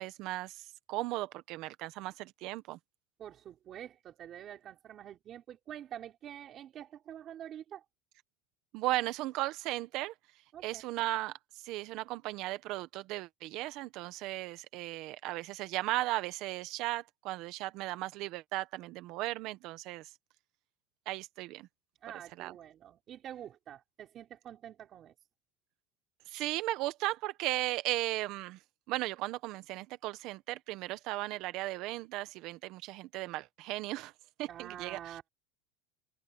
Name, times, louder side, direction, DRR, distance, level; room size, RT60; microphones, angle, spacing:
voice 1, 0.0-2.8 8.7-10.1 10.6-11.4 11.6-20.1 21.1-21.7 22.4-22.5 26.3-28.6 28.9-34.1 34.4-35.2, right 18 dB, 50° right, 1.3 m, -36 dB
voice 2, 3.2-7.8 10.5-10.8 22.0-25.1 34.5-35.2, right 10 dB, 30° right, 4.3 m, -47 dB
supercardioid pair, 155°, 0 cm